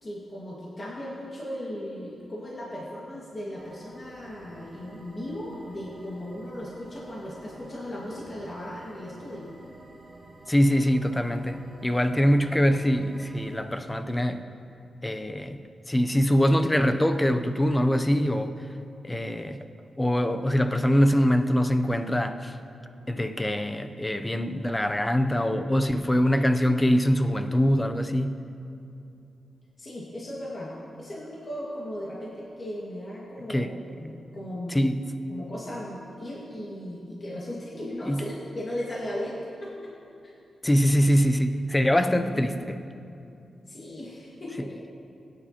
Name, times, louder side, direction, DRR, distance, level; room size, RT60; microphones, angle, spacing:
voice 1, 0.0-9.5 25.8-26.2 29.8-33.7 34.0-34.8 35.3-39.9 40.2-40.3 43.7-44.7, left 1 dB, 35° left, -6 dB, 1.9 m, -37 dB
sound 1, 3.5-13.6, right 2 dB, 35° right, 1.4 m, -50 dB
voice 2, 10.5-14.5 15.0-15.6 15.9-18.5 19.0-19.6 20.0-22.6 23.1-28.4 33.5-33.8 34.7-35.1 38.0-38.2 40.6-42.8, equal, 15° left, 9 dB, 0.6 m, -23 dB
16.5 x 9.4 x 2.9 m, 2.6 s
cardioid pair, 80°, 0 cm